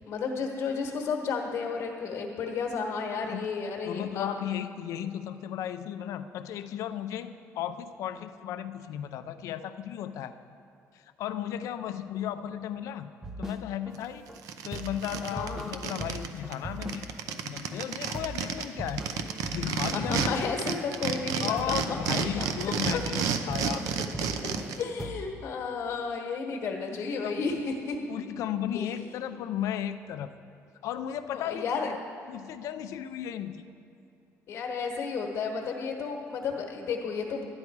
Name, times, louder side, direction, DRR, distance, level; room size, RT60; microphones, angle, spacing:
voice 1, 0.1-4.3 15.3-15.7 19.9-22.5 22.9-23.0 24.4-24.5 24.8-28.0 28.7-28.9 31.3-31.9 34.5-37.5, left 5 dB, 50° left, 1 dB, 1.2 m, -32 dB
voice 2, 3.9-10.4 10.9-13.1 13.4-14.3 14.6-17.1 17.4-19.0 19.5-20.5 21.4-23.9 24.6-24.7 25.0-25.1 27.0-27.5 28.1-30.3 30.8-32.0 32.3-33.6, left 10 dB, 65° left, 10 dB, 0.5 m, -35 dB
sound 1, 13.2-14.0 14.3-14.4 14.7-17.4 17.7-17.8 18.1-20.8 21.1-24.7 25.0-25.4, right 1 dB, 10° right, 0.5 m, -40 dB
sound 2, 13.9-14.0 14.4-16.3 16.5-16.6 16.8-20.3 20.6-24.8, right 7 dB, 70° right, 0.7 m, -31 dB
12.0 x 9.7 x 4.7 m, 2.5 s
cardioid pair, 170°, 6 cm